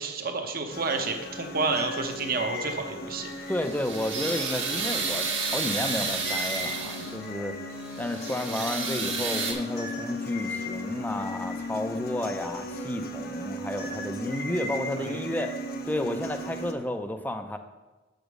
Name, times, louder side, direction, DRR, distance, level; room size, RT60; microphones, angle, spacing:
voice 1, 0.0-3.3 15.0-15.3, right 3 dB, 50° right, 4 dB, 0.9 m, -30 dB
sound 1, 0.7-16.7, left 1 dB, 55° left, 0.8 m, -36 dB
sound 2, 3.3-7.3 7.7-9.5, right 4 dB, 85° right, 1.6 m, -31 dB
voice 2, 3.5-7.6 8.0-15.6 15.9-17.6, left 1 dB, 10° left, 7 dB, 0.5 m, -32 dB
7.3 x 5.1 x 6.2 m, 1.2 s
head